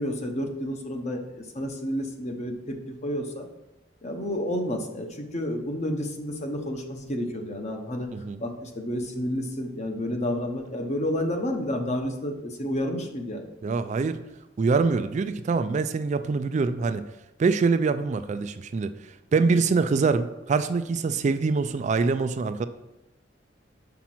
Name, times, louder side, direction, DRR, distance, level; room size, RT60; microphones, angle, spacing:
voice 1, 0.0-3.5 4.0-8.1 8.4-13.4, left 1 dB, 40° left, 4 dB, 0.9 m, -30 dB
voice 2, 8.1-8.4 13.6-14.2 14.6-17.0 17.4-18.9 19.3-22.7, right 4 dB, 40° right, 10 dB, 0.3 m, -24 dB
5.8 x 5.1 x 5.9 m, 0.96 s
head